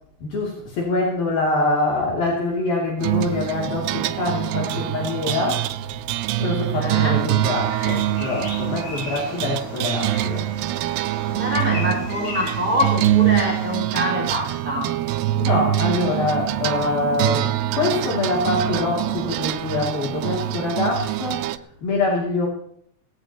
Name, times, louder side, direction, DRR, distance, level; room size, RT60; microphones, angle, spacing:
voice 1, 0.2-5.7 6.4-10.5 10.9-11.0 15.4-22.5, left 2 dB, 65° left, -3 dB, 4.7 m, -24 dB
sound 1, 3.0-21.6, right 13 dB, 90° right, 2.7 m, -24 dB
voice 2, 6.7-7.2 11.3-14.9, left 1 dB, 20° right, -2 dB, 6.4 m, -25 dB
Bird vocalization bird call bird song, 7.1-13.7, left 2 dB, 50° left, 7.8 m, -37 dB
19.0 x 16.0 x 3.0 m, 0.66 s
omnidirectional pair, 4.5 m